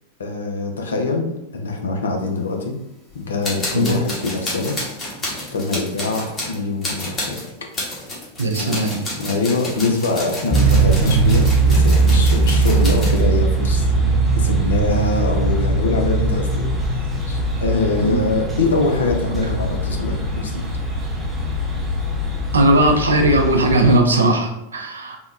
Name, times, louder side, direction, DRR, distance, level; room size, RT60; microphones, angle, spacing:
voice 1, 0.2-2.7 3.1-4.8 5.5-7.4 8.6-8.7 9.2-16.7 17.2-20.6, left 3 dB, 70° left, 2 dB, 0.5 m, -23 dB
sound 1, 3.1-3.2 3.4-13.2, left 1 dB, 25° left, 1.0 m, -30 dB
voice 2, 8.4-9.0 18.1-18.2 22.5-25.2, right 1 dB, 75° right, 3 dB, 0.4 m, -17 dB
sound 2, 10.5-24.0, right 3 dB, 10° right, 0.6 m, -20 dB
3.5 x 2.1 x 2.4 m, 0.86 s
figure-of-eight pair, 90°, 0 cm